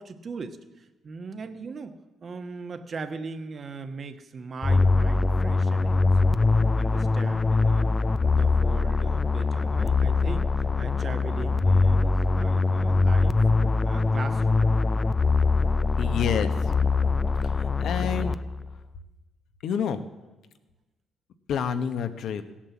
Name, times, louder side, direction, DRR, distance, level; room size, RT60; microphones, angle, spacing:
voice 1, 0.0-1.9 2.2-6.4 6.7-7.9 8.2-13.4 13.8-14.6, right 4 dB, 45° right, 9 dB, 1.2 m, -39 dB
sound 1, 4.6-18.7, left 3 dB, 25° left, 0.4 m, -23 dB
voice 2, 16.0-16.5 17.8-18.4 19.6-20.0 21.5-22.4, left 7 dB, 70° left, 10 dB, 1.0 m, -28 dB
16.0 x 8.8 x 7.3 m, 1.1 s
cardioid pair, 90°, 0 cm